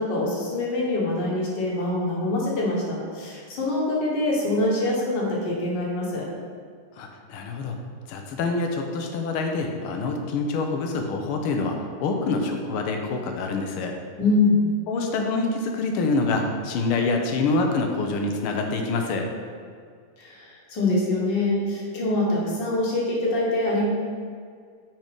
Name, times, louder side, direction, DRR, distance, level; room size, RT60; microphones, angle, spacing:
voice 1, 0.0-6.3 14.2-14.6 20.2-23.9, left 2 dB, 55° left, -3 dB, 1.9 m, -24 dB
voice 2, 7.0-7.8 8.1-14.0 14.9-19.3, left 3 dB, 85° left, 3 dB, 1.7 m, -26 dB
6.1 x 4.3 x 5.1 m, 2.1 s
omnidirectional pair, 2.3 m